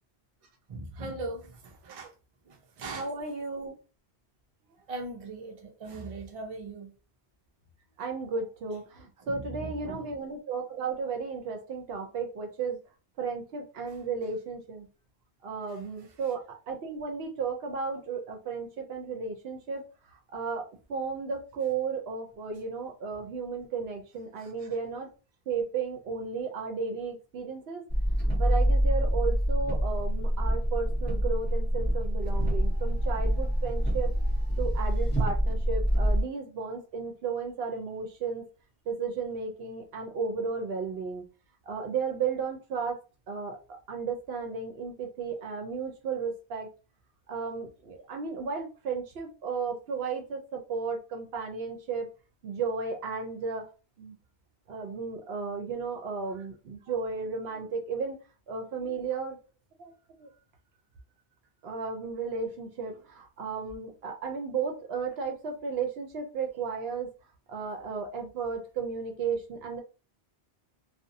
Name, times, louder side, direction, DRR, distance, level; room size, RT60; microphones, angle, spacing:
voice 1, 0.7-2.1 2.5-3.1 4.9-6.9 9.3-10.1 24.4-24.7, right 2 dB, 40° right, 0.6 m, -40 dB
voice 2, 2.9-3.7 8.0-12.8 13.2-14.9 15.4-19.9 20.3-20.6 20.9-25.1 25.5-27.8 28.4-34.1 34.6-38.5 38.9-41.2 41.7-43.0 43.3-46.7 47.3-52.1 52.4-53.6 54.0-54.1 54.7-58.2 58.5-59.4 59.8-59.9 60.2-60.3 61.6-67.1 67.5-69.8, right 5 dB, 70° right, 0.8 m, -34 dB
sound 1, 27.9-36.2, equal, 15° left, 0.5 m, -26 dB
2.5 x 2.0 x 2.6 m
omnidirectional pair, 1.1 m